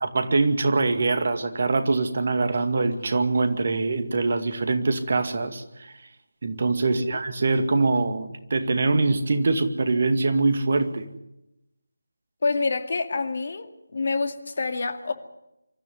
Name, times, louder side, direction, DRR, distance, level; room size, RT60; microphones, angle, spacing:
voice 1, 0.0-5.9 6.4-11.1, right 3 dB, 45° right, 8 dB, 2.2 m, -23 dB
voice 2, 6.9-7.2 12.4-15.1, left 3 dB, 45° left, 8 dB, 2.3 m, -27 dB
24.5 x 14.0 x 9.6 m, 0.88 s
figure-of-eight pair, 160°, 0 cm